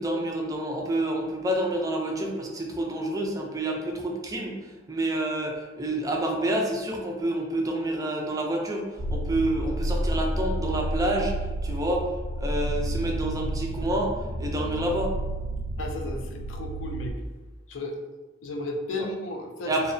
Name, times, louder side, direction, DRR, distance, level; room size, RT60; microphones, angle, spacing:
voice 1, 0.0-4.5 4.9-11.3 11.6-12.1 12.4-15.2 19.6-19.9, right 1 dB, 20° right, 0 dB, 0.3 m, -28 dB
sound 1, 9.0-17.1, right 1 dB, 85° right, 0.6 m, -30 dB
voice 2, 15.8-17.1 17.7-18.0 18.4-19.7, left 2 dB, 85° left, 3 dB, 0.4 m, -34 dB
2.8 x 2.0 x 2.5 m, 1.2 s
head